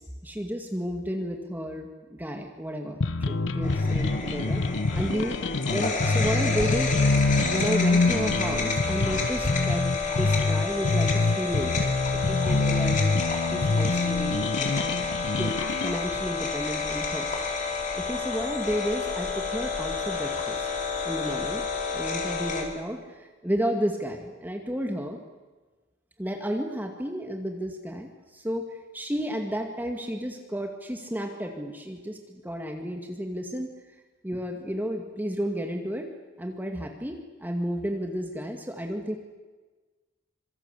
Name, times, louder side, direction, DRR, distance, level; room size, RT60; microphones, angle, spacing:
voice 1, 0.0-5.4 5.7-6.9 7.5-11.9 12.1-13.2 13.5-14.8 15.4-17.3 18.0-20.7 21.0-21.7 21.9-25.2 26.2-28.7 28.9-33.7 34.2-36.1 36.4-39.1, equal, 10° right, 3 dB, 2.1 m, -32 dB
sound 1, 3.0-16.0, left 3 dB, 85° left, 0.8 m, -26 dB
sound 2, 3.6-22.6, left 4 dB, 45° left, 5.1 m, -30 dB
26.5 x 24.5 x 8.4 m, 1.3 s
head